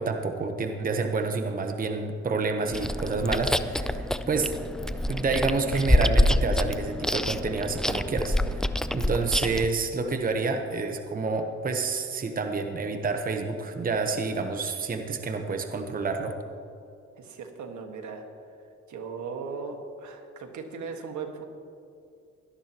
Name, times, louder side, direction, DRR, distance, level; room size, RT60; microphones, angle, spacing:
voice 1, 0.0-4.6 5.1-8.6 8.9-16.3, right 4 dB, 30° right, 5 dB, 0.9 m, -29 dB
Chewing mastication, 2.7-9.7, left 1 dB, ahead, 0.3 m, -26 dB
voice 2, 17.2-18.2 18.9-21.5, right 5 dB, 75° right, 4 dB, 1.6 m, -37 dB
17.5 x 12.0 x 3.0 m, 2.5 s
cardioid pair, 90°, 30 cm